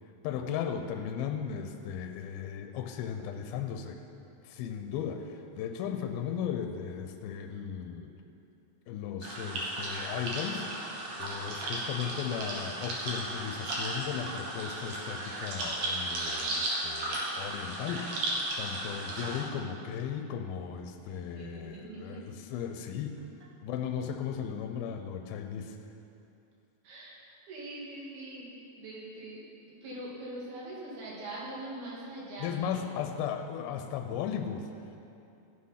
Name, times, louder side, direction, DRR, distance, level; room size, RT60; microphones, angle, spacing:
voice 1, 0.2-4.0 4.4-8.1 8.9-10.7 11.2-18.1 18.6-23.2 23.6-25.8 32.4-34.7, left 8 dB, 85° left, 6 dB, 2.5 m, -36 dB
sound 1, 9.2-19.4, right 1 dB, 60° right, 2.7 m, -35 dB
voice 2, 21.1-22.2 26.8-27.2 27.5-28.5 28.8-29.4 29.8-32.6, right 1 dB, 85° right, -6 dB, 4.1 m, -42 dB
14.5 x 6.5 x 5.6 m, 2.7 s
omnidirectional pair, 4.3 m